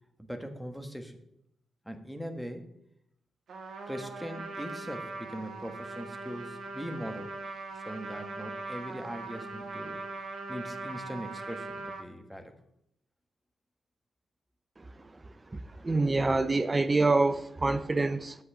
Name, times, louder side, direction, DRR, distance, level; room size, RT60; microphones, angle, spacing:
voice 1, 0.2-1.2 1.8-2.8 3.9-7.3 7.7-10.0 10.5-12.5, equal, ahead, 5 dB, 1.3 m, -40 dB
Trumpet, 3.5-12.0, right 3 dB, 75° right, 1.5 m, -40 dB
voice 2, 15.5-18.4, right 3 dB, 25° right, 11 dB, 0.6 m, -26 dB
8.1 x 5.5 x 7.0 m, 0.78 s
cardioid pair, 75°, 0 cm